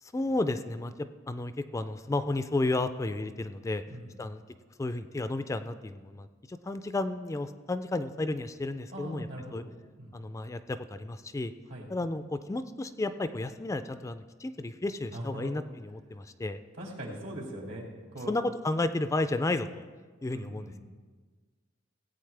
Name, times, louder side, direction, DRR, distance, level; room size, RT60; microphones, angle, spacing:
voice 1, 0.0-3.8 4.2-4.4 4.8-9.6 10.1-11.5 11.9-16.6 18.3-19.9 20.2-20.7, left 2 dB, 15° left, 11 dB, 0.3 m, -32 dB
voice 2, 8.9-9.6 10.0-10.2 11.7-11.9 15.1-15.6 16.8-17.8 18.1-18.3 20.3-20.8, right 1 dB, 80° right, -1 dB, 2.5 m, -40 dB
16.5 x 8.5 x 3.3 m, 1.4 s
head